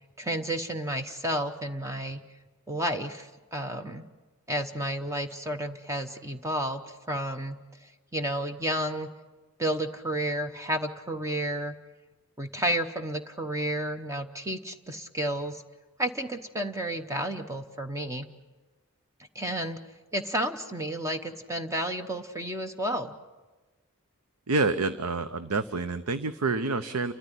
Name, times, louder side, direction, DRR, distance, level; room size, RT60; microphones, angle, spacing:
voice 1, 0.0-2.2 2.7-4.0 4.5-9.1 9.6-11.7 12.4-15.6 16.0-18.3 19.3-19.8 20.1-23.1, right 1 dB, 15° right, 7 dB, 0.9 m, -31 dB
voice 2, 24.5-27.1, right 3 dB, 85° right, 11 dB, 0.8 m, -28 dB
29.5 x 13.5 x 10.0 m, 1.2 s
head